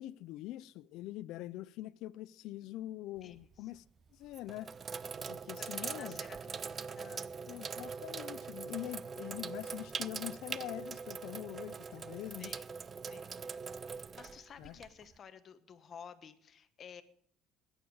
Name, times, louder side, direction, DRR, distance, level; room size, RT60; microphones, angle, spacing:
voice 1, 0.0-3.8 4.1-4.7 5.3-6.2 7.5-12.5 14.6-14.8, left 15 dB, 75° left, 0.5 m, -44 dB
voice 2, 3.2-3.7 5.5-7.4 12.4-12.6 13.1-13.4 13.9-17.0, left 7 dB, 40° left, 1.1 m, -53 dB
Sink (filling or washing), 3.2-3.6 4.2-15.2, right 5 dB, 30° right, 0.4 m, -42 dB
20.0 x 9.1 x 4.8 m
cardioid pair, 130°, 0 cm